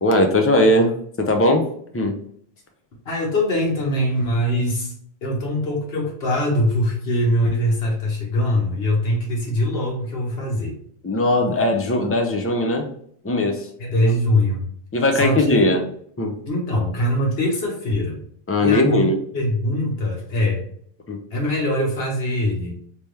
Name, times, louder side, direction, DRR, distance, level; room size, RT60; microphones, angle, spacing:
voice 1, 0.0-1.7 1.9-2.2 11.0-12.9 13.2-13.7 14.9-15.8 16.2-16.3 18.5-19.2 21.1-21.2, left 1 dB, 25° left, 4 dB, 0.3 m, -19 dB
voice 2, 3.0-4.9 5.2-10.8 13.8-14.6 15.1-15.7 16.5-18.2 18.6-20.6 21.3-22.7, left 1 dB, 70° left, -1 dB, 1.3 m, -22 dB
3.4 x 2.9 x 3.2 m, 0.62 s
omnidirectional pair, 1.1 m